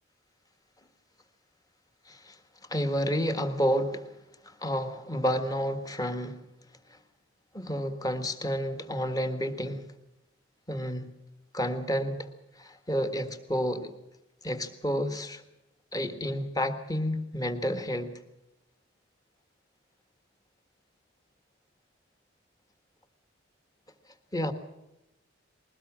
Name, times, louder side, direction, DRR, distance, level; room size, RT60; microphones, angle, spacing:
voice 1, 2.7-4.1 4.4-6.4 7.5-9.8 10.7-11.1 11.5-12.3 12.6-13.9 14.4-15.4 15.9-18.1 24.3-24.5, equal, 20° left, 1.6 m, -30 dB
21.5 x 18.5 x 7.4 m
head